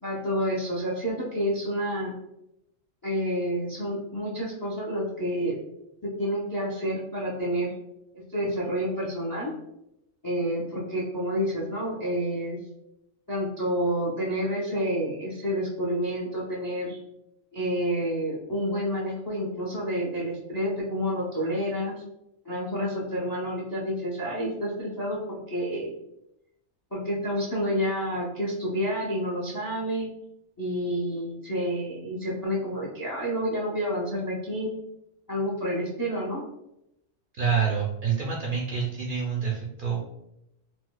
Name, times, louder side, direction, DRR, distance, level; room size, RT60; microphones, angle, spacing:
voice 1, 0.0-2.1 3.0-5.5 6.2-7.7 8.3-9.5 10.2-12.6 13.3-17.0 17.5-21.9 22.5-25.9 26.9-30.1 30.6-34.7 35.3-36.4, equal, 35° left, -4 dB, 0.3 m, -29 dB
voice 2, 37.4-40.0, right 6 dB, 60° right, -3 dB, 0.6 m, -27 dB
4.3 x 2.0 x 2.2 m, 0.83 s
omnidirectional pair, 1.4 m